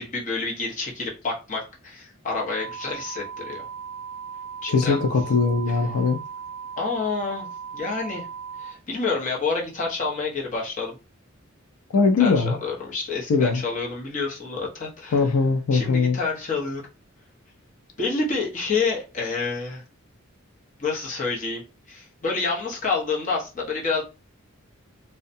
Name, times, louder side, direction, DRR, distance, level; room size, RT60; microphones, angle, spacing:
voice 1, 0.0-3.6 4.6-5.0 6.8-7.5 7.7-8.2 8.6-11.0 12.2-15.2 15.7-16.8 18.0-19.8 20.8-21.6 21.9-24.0, left 4 dB, 35° left, 0.8 m, -28 dB
sound 1, 2.5-8.7, right 6 dB, 60° right, 0.3 m, -37 dB
voice 2, 4.7-6.2 11.9-12.5 13.3-13.6 15.1-16.2, left 4 dB, 85° left, 0.4 m, -20 dB
2.6 x 2.2 x 2.6 m
head